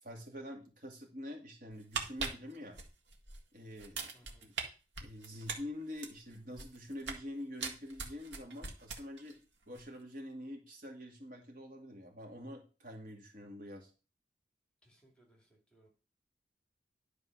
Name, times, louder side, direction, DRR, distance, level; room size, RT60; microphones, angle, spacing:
voice 1, 0.0-2.8 3.5-4.1 4.4-4.5 5.0-9.4 9.7-13.9, left 1 dB, 45° right, 1 dB, 2.5 m, -46 dB
sound 1, 1.7-3.4 3.8-4.6 5.0-7.3 7.6-9.4 9.6-9.8, right 5 dB, 75° right, 1.8 m, -40 dB
voice 2, 4.1-4.4 14.8-15.9, right 1 dB, 5° left, 1 dB, 2.3 m, -66 dB
11.0 x 4.8 x 6.1 m, 0.33 s
head